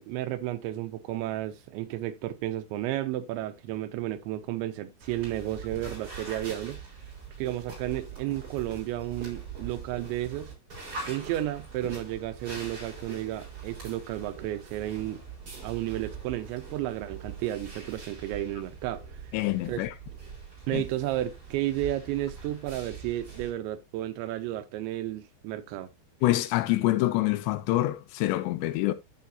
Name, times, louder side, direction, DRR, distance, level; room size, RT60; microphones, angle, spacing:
voice 1, 0.0-6.8 7.4-10.5 11.1-15.2 15.6-19.0 19.7-19.8 20.7-25.9, right 14 dB, 90° right, 3.1 m, -32 dB
sound 1, 5.0-23.5, right 5 dB, 30° right, 5.7 m, -43 dB
voice 2, 19.3-19.9 20.7-20.8 26.2-28.9, left 16 dB, 80° left, 2.7 m, -26 dB
13.0 x 5.9 x 2.7 m
omnidirectional pair, 5.2 m